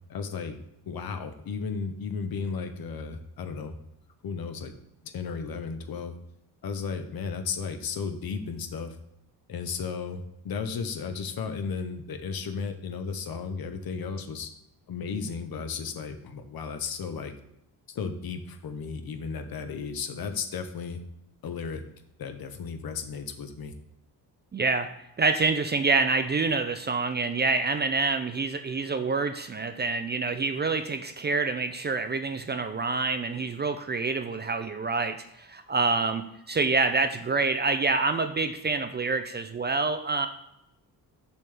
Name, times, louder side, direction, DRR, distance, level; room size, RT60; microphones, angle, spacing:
voice 1, 0.1-0.6 0.9-3.7 4.2-4.7 5.1-6.1 6.6-9.0 9.5-14.5 14.9-17.3 17.9-21.0 21.4-21.8 22.2-23.7, left 5 dB, 60° left, 8 dB, 0.9 m, -34 dB
voice 2, 24.5-24.9 25.2-40.3, right 3 dB, 25° right, 8 dB, 0.4 m, -27 dB
7.0 x 6.2 x 3.4 m, 0.80 s
cardioid pair, 130°, 40 cm